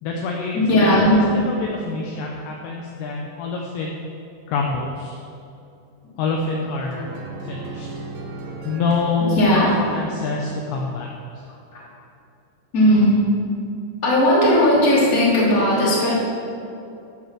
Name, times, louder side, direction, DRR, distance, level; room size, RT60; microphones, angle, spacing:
voice 1, 0.0-3.9 4.5-5.2 6.2-7.1 7.4-7.9 8.7-11.1 11.4-11.5, left 4 dB, 80° left, 0 dB, 2.7 m, -26 dB
voice 2, 0.5-1.1 9.3-9.7 11.7-11.8 12.7-13.1 14.0-16.1, left 1 dB, 25° left, -8 dB, 2.3 m, -16 dB
sound 1, 6.9-11.1, right 2 dB, 75° right, 3.7 m, -36 dB
13.5 x 5.7 x 6.1 m, 2.6 s
omnidirectional pair, 5.7 m